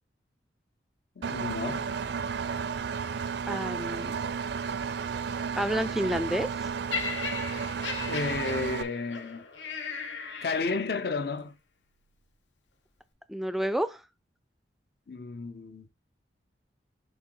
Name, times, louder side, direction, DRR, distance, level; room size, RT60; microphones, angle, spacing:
voice 1, 1.2-1.9 8.0-9.4 10.4-11.5 15.1-15.9, left 4 dB, 60° left, 0.6 m, -32 dB
Engine, 1.2-8.8, right 6 dB, 70° right, 0.5 m, -33 dB
voice 2, 3.5-4.2 5.6-6.7 13.3-14.0, equal, ahead, 0.3 m, -30 dB
Laughter, 6.9-11.2 12.0-12.1, left 5 dB, 90° left, 1.2 m, -37 dB
6.5 x 3.8 x 4.5 m
head